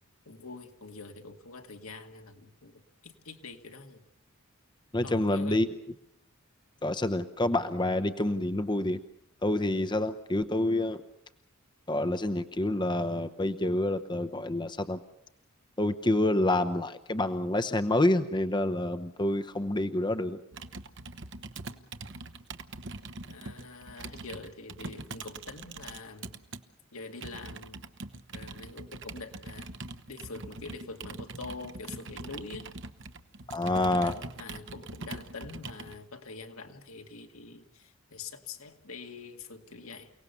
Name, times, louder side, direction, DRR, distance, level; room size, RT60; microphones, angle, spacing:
voice 1, 0.3-4.0 5.0-5.7 21.7-21.9 23.3-26.4 26.9-27.8 28.3-29.7 30.1-32.7 33.7-40.1, left 3 dB, 80° left, 4 dB, 2.1 m, -45 dB
voice 2, 4.9-5.7 6.8-9.0 9.4-11.0 11.9-15.0 15.8-20.4 33.5-34.1, left 1 dB, 20° left, 9 dB, 0.8 m, -28 dB
Computer keyboard, 20.5-26.6 27.2-36.0, right 3 dB, 55° right, 1.1 m, -43 dB
29.5 x 18.0 x 6.9 m, 0.78 s
head